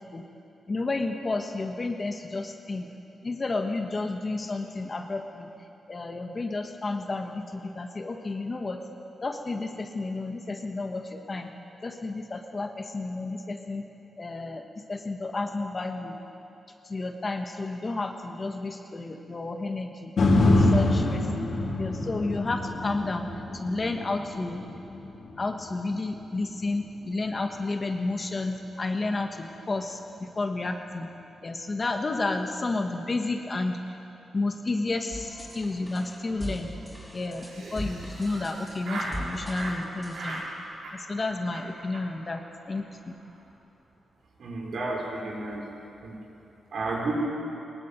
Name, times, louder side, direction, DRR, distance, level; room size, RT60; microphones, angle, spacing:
voice 1, 0.7-2.9 3.2-5.5 5.9-8.8 9.2-11.5 11.8-13.8 14.2-14.6 14.9-16.2 16.8-20.1 20.4-21.5 21.8-24.6 25.4-31.1 31.4-33.8 34.3-36.7 37.1-40.4 40.9-43.2, left 3 dB, 30° left, 4 dB, 1.5 m, -31 dB
sound 1, 20.2-28.3 28.8-28.9, left 2 dB, 55° left, 3.8 m, -27 dB
sound 2, 35.1-40.4, equal, 5° left, 5.3 m, -40 dB
Laughter, 37.4-39.2 39.5-39.8 40.1-40.5 40.8-41.2 41.5-41.6 41.9-42.0 42.3-42.4 42.6-42.8 43.1-43.4, right 2 dB, 80° right, 7.1 m, -38 dB
voice 2, 44.4-45.6 46.0-46.2 46.7-47.2, right 2 dB, 55° right, -1 dB, 5.5 m, -31 dB
22.0 x 20.5 x 9.1 m, 2.8 s
wide cardioid pair, 145°, 0 cm